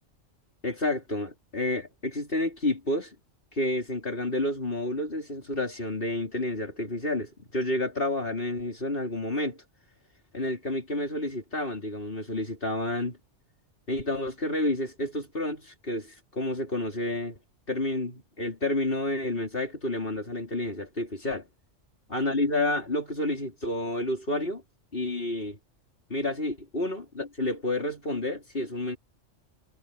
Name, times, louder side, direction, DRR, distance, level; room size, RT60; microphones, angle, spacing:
voice 1, 0.6-3.1 3.5-9.6 10.3-13.2 13.9-17.4 17.7-21.4 22.1-24.6 24.9-25.6 26.1-29.0, left 1 dB, 50° left, 5.0 m, -30 dB
omnidirectional pair, 1.2 m